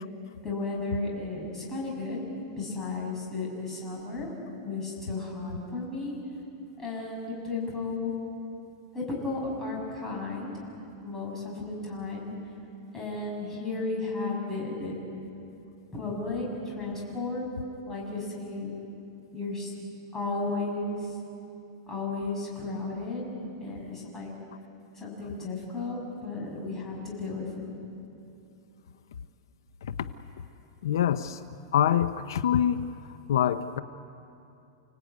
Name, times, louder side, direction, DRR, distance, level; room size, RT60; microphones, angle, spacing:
voice 1, 0.4-2.2 2.6-4.3 4.6-6.1 6.8-8.1 8.9-10.7 11.0-12.3 12.9-15.0 15.9-17.5 17.9-18.7 19.3-19.7 20.1-21.2 21.9-23.3 23.6-24.3 24.9-27.7, left 3 dB, 15° left, -2 dB, 6.7 m, -34 dB
voice 2, 30.8-31.4 31.7-32.8 33.3-33.8, left 10 dB, 90° left, 11 dB, 0.8 m, -25 dB
29.5 x 18.5 x 9.5 m, 2.7 s
supercardioid pair, 155°, 2 cm